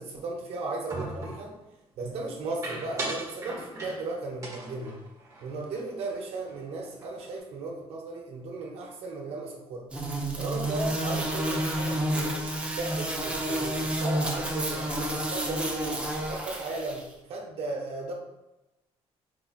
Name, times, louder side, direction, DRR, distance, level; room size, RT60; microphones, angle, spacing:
voice 1, 0.0-1.5 2.0-5.0 5.4-9.9 10.4-12.3 12.7-14.9 15.2-16.0 16.3-18.1, right 3 dB, 65° right, 0 dB, 0.7 m, -36 dB
sound 1, 0.9-1.5 2.6-4.1 4.4-6.2 6.4-6.6 6.9-7.4, right 2 dB, 30° right, 1.0 m, -38 dB
sound 2, 9.9-17.0, right 1 dB, 10° right, 0.5 m, -30 dB
4.4 x 2.7 x 2.4 m, 0.97 s
cardioid pair, 135°, 11 cm